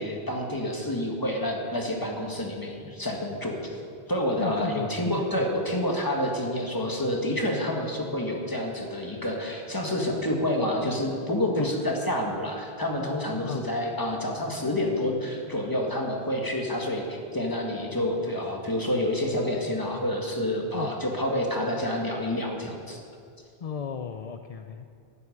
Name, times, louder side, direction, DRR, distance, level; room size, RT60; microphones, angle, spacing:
voice 1, 0.0-3.6 4.1-23.0, left 1 dB, 20° left, 0 dB, 1.9 m, -28 dB
voice 2, 4.4-5.0 5.4-5.5 11.5-11.7 13.4-13.6 20.7-20.9 23.6-24.8, left 6 dB, 45° left, 7 dB, 0.5 m, -34 dB
12.0 x 8.5 x 10.0 m, 2.3 s
omnidirectional pair, 1.1 m